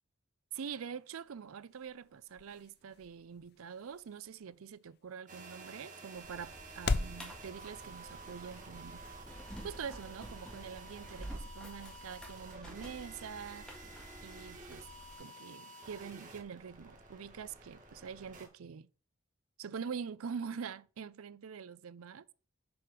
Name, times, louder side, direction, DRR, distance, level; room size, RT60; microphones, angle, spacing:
voice 1, 0.5-9.0 9.6-13.7 14.2-14.9 15.2-18.9 19.6-22.2, right 6 dB, 85° right, 0.5 m, -45 dB
sound 1, 1.0-7.2, left 3 dB, 50° left, 0.6 m, -41 dB
sound 2, 5.3-18.5, right 2 dB, 35° right, 2.1 m, -51 dB
sound 3, 6.2-15.2, right 1 dB, 5° left, 1.9 m, -50 dB
7.9 x 5.0 x 5.9 m
head